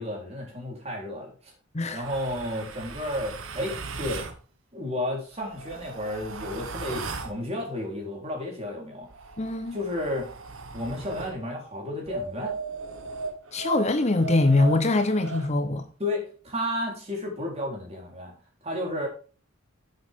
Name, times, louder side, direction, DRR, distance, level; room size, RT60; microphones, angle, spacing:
voice 1, 0.0-1.5 1.9-4.3 4.7-9.1 9.7-10.3 10.7-12.6 16.0-18.3 18.6-19.1, left 1 dB, 30° right, 3.7 m, -32 dB
sound 1, 2.0-4.4 5.3-7.4 9.0-11.4 12.1-15.5, right 3 dB, 75° right, 1.3 m, -37 dB
voice 2, 9.4-9.8 13.5-15.8, left 2 dB, 30° left, 0.8 m, -23 dB
10.5 x 7.5 x 3.6 m
head